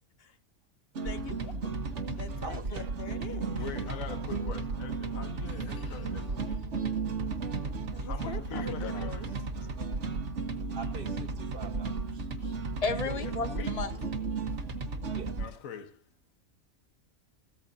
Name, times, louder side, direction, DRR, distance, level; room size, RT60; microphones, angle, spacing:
sound 1, 0.9-15.5, right 4 dB, 60° right, 1.6 m, -34 dB
voice 1, 1.0-1.8 2.1-3.6 7.9-9.3, left 5 dB, 50° left, 1.1 m, -43 dB
voice 2, 2.4-2.9 10.7-12.3 15.1-15.4, right 4 dB, 45° right, 1.3 m, -44 dB
voice 3, 3.5-6.7 8.0-9.4 12.4-12.6 12.9-13.8 15.4-16.0, left 7 dB, 75° left, 1.5 m, -43 dB
voice 4, 12.8-13.9, left 3 dB, 30° left, 1.2 m, -32 dB
15.5 x 13.5 x 2.7 m
omnidirectional pair, 1.4 m